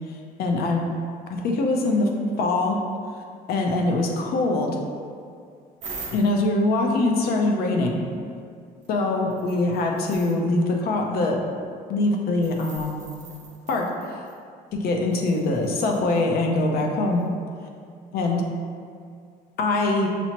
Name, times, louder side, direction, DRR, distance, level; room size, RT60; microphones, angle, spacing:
voice 1, 0.4-0.8 1.3-2.1 2.4-2.8 3.5-4.7 6.1-8.0 8.9-11.4 11.9-13.0 13.7-13.9 14.7-17.2 18.1-18.4 19.6-20.1, left 2 dB, 65° left, 1 dB, 0.6 m, -23 dB
sound 1, 5.8-6.5 8.8-8.9 9.3-10.4 12.4-14.4 15.1-16.2 17.2-17.3, right 3 dB, 45° right, 0.6 m, -42 dB
5.8 x 2.0 x 2.8 m, 2.2 s
cardioid pair, 110°, 17 cm